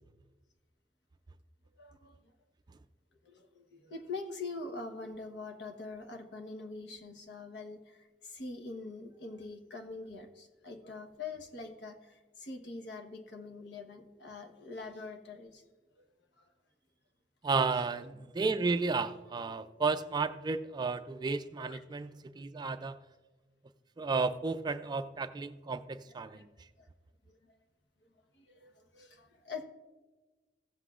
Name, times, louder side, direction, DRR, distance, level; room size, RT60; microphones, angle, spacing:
voice 1, 1.8-2.2 3.2-15.6 16.0-16.1 16.4-16.5 17.7-17.8 21.6-21.8 26.1-26.4 26.8-26.9 27.3-27.6 28.0-29.7, left 3 dB, 70° left, 1.1 m, -44 dB
voice 2, 17.4-23.0 24.0-26.4, right 4 dB, 25° right, 0.3 m, -33 dB
15.5 x 8.0 x 2.4 m
head